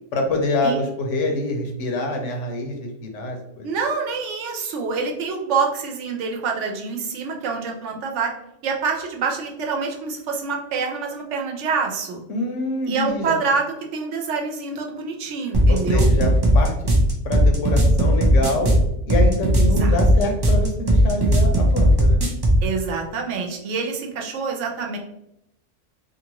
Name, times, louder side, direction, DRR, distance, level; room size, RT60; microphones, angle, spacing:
voice 1, 0.1-3.7 12.3-13.4 15.7-16.7 17.2-18.7 19.1-22.2, left 2 dB, 85° left, 2 dB, 1.1 m, -25 dB
voice 2, 3.6-8.3 8.6-12.2 12.9-16.1 19.8-20.0 22.6-25.0, right 5 dB, 75° right, 2 dB, 1.0 m, -26 dB
sound 1, 15.5-22.6, equal, 40° right, 0.3 m, -16 dB
2.9 x 2.6 x 2.8 m, 0.80 s
omnidirectional pair, 1.2 m